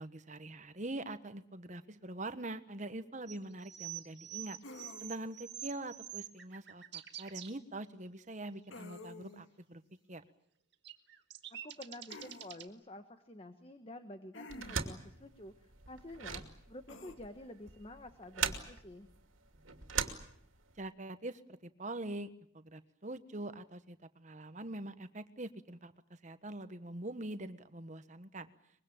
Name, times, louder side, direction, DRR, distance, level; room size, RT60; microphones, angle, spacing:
voice 1, 0.0-4.6 5.0-9.8 10.1-10.2 20.8-28.5, right 2 dB, 35° right, 12 dB, 1.3 m, -44 dB
sound 1, 3.3-7.5 10.8-12.7, right 11 dB, 55° right, 2.0 m, -46 dB
sound 2, 4.6-5.4 8.7-9.5 12.1-12.5 14.3-15.0 16.9-17.1, left 2 dB, 75° left, 2.2 m, -50 dB
voice 2, 11.6-19.1, left 1 dB, 30° left, 8 dB, 1.4 m, -50 dB
sound 3, 14.5-20.8, right 7 dB, 85° right, 2.6 m, -40 dB
24.0 x 22.5 x 8.8 m, 0.66 s
head